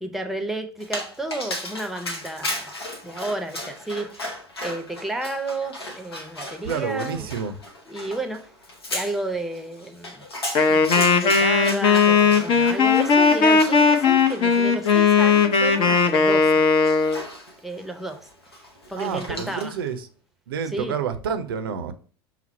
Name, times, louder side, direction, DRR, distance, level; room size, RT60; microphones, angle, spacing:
voice 1, 0.0-2.8 3.0-4.2 4.6-7.3 7.9-8.4 8.9-10.2 10.7-16.5 17.6-18.3 18.9-19.8 20.6-21.0, right 2 dB, ahead, 0.7 m, -32 dB
Dog, 0.8-19.9, left 1 dB, 80° left, 0.8 m, -36 dB
voice 2, 6.6-7.5 19.0-20.0 20.5-21.9, right 7 dB, 65° right, 0.6 m, -28 dB
Wind instrument woodwind instrument, 10.5-17.2, left 5 dB, 40° left, 0.7 m, -18 dB
5.7 x 2.0 x 4.2 m
figure-of-eight pair, 75°, 13 cm